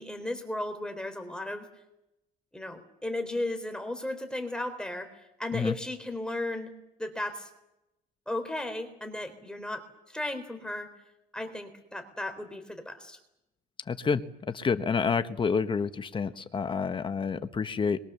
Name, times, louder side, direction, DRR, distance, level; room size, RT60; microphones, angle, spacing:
voice 1, 0.0-1.7 2.5-5.1 5.4-6.7 7.0-7.5 8.3-10.9 11.3-13.2, left 1 dB, 5° left, 7 dB, 3.7 m, -35 dB
voice 2, 13.9-14.2 14.5-18.0, left 5 dB, 30° left, 11 dB, 1.3 m, -28 dB
26.0 x 23.0 x 7.0 m, 0.88 s
cardioid pair, 110°, 17 cm